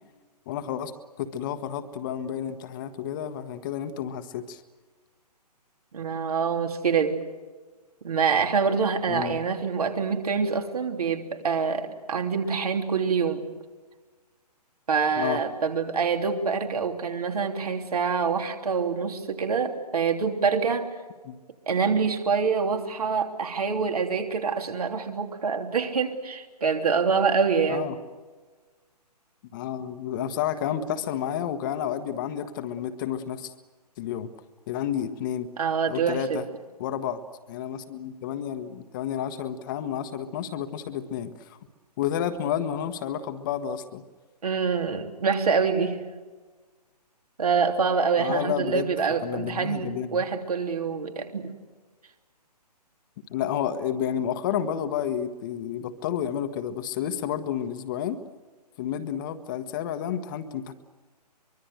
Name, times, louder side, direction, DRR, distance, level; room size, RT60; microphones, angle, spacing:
voice 1, 0.5-0.9 1.2-4.6 9.1-9.4 15.2-15.4 21.2-21.4 27.7-28.0 29.5-33.5 34.0-34.3 34.7-35.5 35.9-36.4 36.8-37.2 37.5-41.6 42.0-44.0 48.2-48.9 49.2-50.2 53.3-58.2 58.8-60.7, left 9 dB, 30° left, 8 dB, 1.3 m, -30 dB
voice 2, 5.9-7.2 8.0-13.5 14.9-20.9 21.7-27.9 35.6-36.4 44.4-46.0 47.4-51.5, right 5 dB, 60° right, 4 dB, 3.3 m, -26 dB
24.0 x 23.5 x 8.0 m, 1.3 s
figure-of-eight pair, 135°, 21 cm